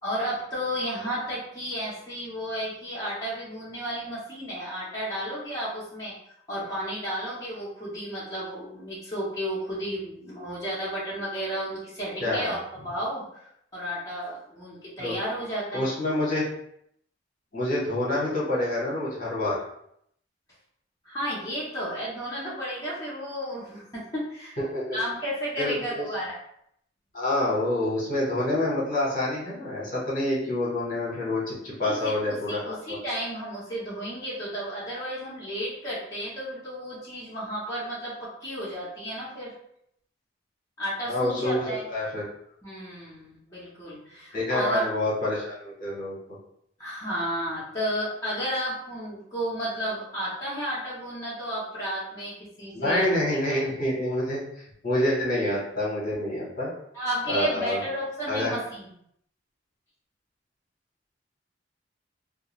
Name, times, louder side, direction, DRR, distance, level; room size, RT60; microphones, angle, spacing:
voice 1, 0.0-6.1 6.5-15.9 21.0-24.6 24.9-26.4 31.8-39.5 40.8-41.9 42.6-44.8 46.8-53.1 53.5-53.6 56.9-58.9, equal, 20° left, -9 dB, 0.7 m, -32 dB
voice 2, 12.2-12.5 15.0-15.1 15.7-16.5 17.5-19.6 24.6-25.0 25.6-26.1 27.1-33.0 41.1-42.3 44.3-46.2 52.7-56.7 57.3-57.8 58.3-58.5, left 1 dB, 45° left, -6 dB, 0.9 m, -27 dB
2.3 x 2.2 x 2.9 m, 0.72 s
head